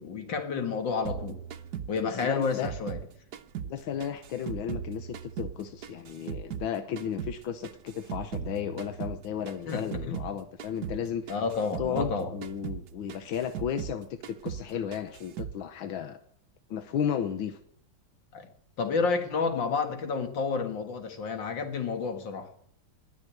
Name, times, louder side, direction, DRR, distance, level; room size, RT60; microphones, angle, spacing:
voice 1, 0.0-1.4 1.9-3.0 9.7-10.3 11.3-12.3 18.3-18.5 18.8-22.5, left 5 dB, 70° left, 2.5 m, -30 dB
sound 1, 1.1-3.8 4.0-6.7 7.0-10.3 10.6-11.0 11.3-14.0 14.2-14.7 14.9-15.6, right 8 dB, 60° right, 1.2 m, -38 dB
voice 2, 2.0-2.7 3.6-11.2 11.8-16.2 16.7-17.6, left 8 dB, 85° left, 1.7 m, -34 dB
20.5 x 6.8 x 9.2 m
omnidirectional pair, 2.1 m